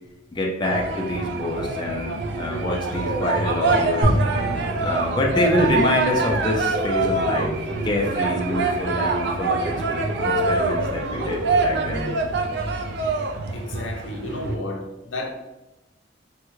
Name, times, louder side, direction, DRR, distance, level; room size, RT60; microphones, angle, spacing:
voice 1, 0.3-4.1 4.8-12.1, left 1 dB, 25° left, -1 dB, 0.4 m, -26 dB
sound 1, 0.6-14.6, right 3 dB, 60° right, 0.4 m, -25 dB
sound 2, 4.0-14.3, equal, 85° right, 0.7 m, -33 dB
voice 2, 13.5-15.3, left 2 dB, 85° left, 2 dB, 0.6 m, -32 dB
3.5 x 2.1 x 3.0 m, 1.0 s
head